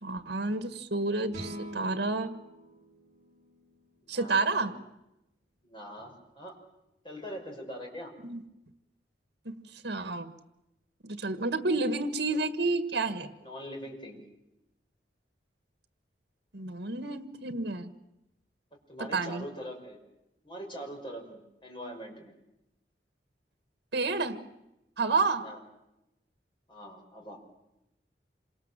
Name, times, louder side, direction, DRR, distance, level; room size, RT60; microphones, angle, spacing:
voice 1, 0.0-2.3 4.1-4.7 8.2-8.4 9.5-10.3 11.0-13.3 16.5-17.9 19.0-19.4 23.9-24.4 25.0-25.5, right 3 dB, 75° right, 10 dB, 1.7 m, -30 dB
sound 1, 1.3-4.6, equal, 45° right, 3.8 m, -46 dB
voice 2, 4.0-4.7 5.6-6.5 7.0-8.1 12.3-12.4 13.4-14.2 18.9-20.0 20.4-22.3 25.4-25.6 26.7-27.4, equal, 30° left, 1 dB, 5.9 m, -42 dB
27.0 x 25.5 x 7.6 m, 0.91 s
head